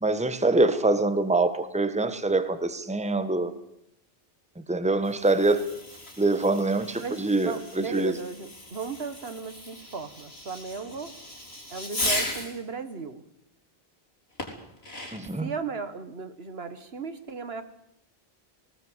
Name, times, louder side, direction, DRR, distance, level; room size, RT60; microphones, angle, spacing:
voice 1, 0.0-3.5 4.7-5.6 6.2-8.1 15.1-15.5, right 2 dB, 5° right, 11 dB, 1.2 m, -24 dB
Fireworks, 4.9-12.6 14.4-15.4, left 1 dB, 80° left, 4.1 m, -36 dB
voice 2, 7.0-11.2 11.7-13.2 15.4-17.6, right 5 dB, 75° right, 11 dB, 1.7 m, -36 dB
18.5 x 18.5 x 8.0 m, 0.79 s
omnidirectional pair, 1.0 m